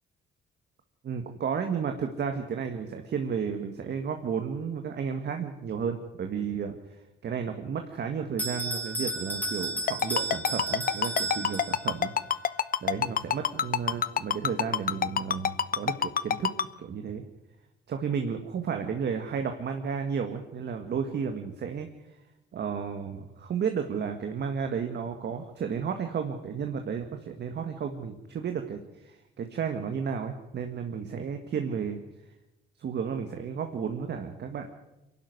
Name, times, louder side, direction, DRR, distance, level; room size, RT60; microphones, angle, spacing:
voice 1, 1.0-6.8 7.2-12.1 12.8-16.5 16.8-17.2 17.9-21.9 22.5-32.0 32.8-34.7, right 6 dB, 60° right, 6 dB, 1.8 m, -32 dB
Bell, 8.4-12.1, right 2 dB, 10° left, 4.2 m, -33 dB
Ringtone, 9.9-16.6, left 8 dB, 45° left, 0.9 m, -25 dB
23.5 x 12.0 x 9.6 m, 0.94 s
cardioid pair, 90°, 20 cm